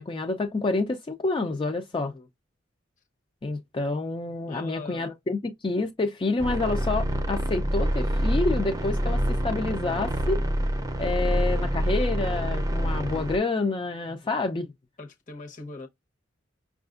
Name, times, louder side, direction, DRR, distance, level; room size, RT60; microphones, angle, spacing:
voice 1, 0.0-2.1 3.4-10.4 11.0-14.7, left 3 dB, 25° left, 0.4 m, -28 dB
voice 2, 1.9-2.3 4.5-5.1 14.1-14.3 15.0-15.9, left 3 dB, 40° left, 0.9 m, -42 dB
sound 1, 6.4-13.4, equal, 20° right, 0.6 m, -26 dB
5.6 x 2.4 x 2.4 m
head